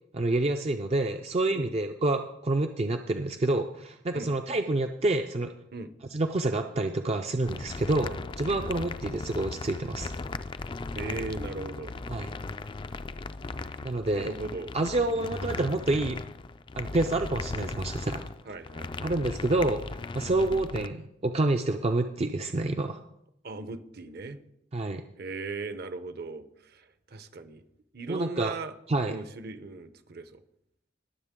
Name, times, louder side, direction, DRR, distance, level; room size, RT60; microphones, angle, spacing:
voice 1, 0.1-5.5 6.1-10.1 12.1-12.3 13.8-14.3 14.7-16.2 16.8-18.2 19.0-23.0 24.7-25.0 28.1-28.5 28.9-29.2, right 2 dB, 35° right, 5 dB, 0.4 m, -28 dB
sound 1, 7.5-20.9, left 3 dB, 25° left, 0.3 m, -37 dB
voice 2, 10.9-11.9 13.6-14.7 15.0-15.2 18.5-19.2 23.4-24.4 25.2-27.6 27.9-28.7 29.1-30.4, right 3 dB, 55° right, 11 dB, 0.8 m, -38 dB
20.0 x 7.4 x 3.7 m, 0.80 s
head